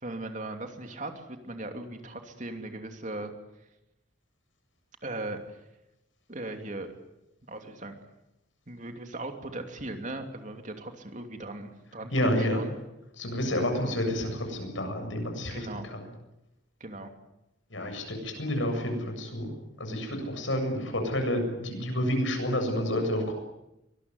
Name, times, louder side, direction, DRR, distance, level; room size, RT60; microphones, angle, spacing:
voice 1, 0.0-3.3 5.0-5.4 6.3-6.9 7.5-8.0 8.7-12.1 12.4-12.7 13.8-14.0 15.5-15.9 16.8-17.1, right 2 dB, 40° right, 5 dB, 2.9 m, -38 dB
voice 2, 12.1-12.6 13.2-16.1 17.7-19.5 19.8-23.3, left 1 dB, 85° left, 4 dB, 7.7 m, -29 dB
23.5 x 19.5 x 9.8 m, 0.90 s
head